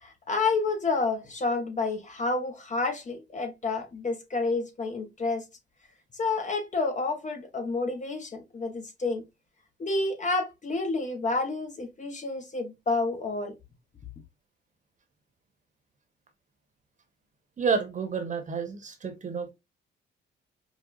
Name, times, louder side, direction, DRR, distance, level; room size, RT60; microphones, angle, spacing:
voice 1, 0.0-5.4 6.1-9.2 9.8-13.5, left 3 dB, 40° left, 1.1 m, -29 dB
voice 2, 17.6-19.5, right 5 dB, 40° right, 1.2 m, -29 dB
5.1 x 2.3 x 2.4 m
cardioid pair, 90°, 20 cm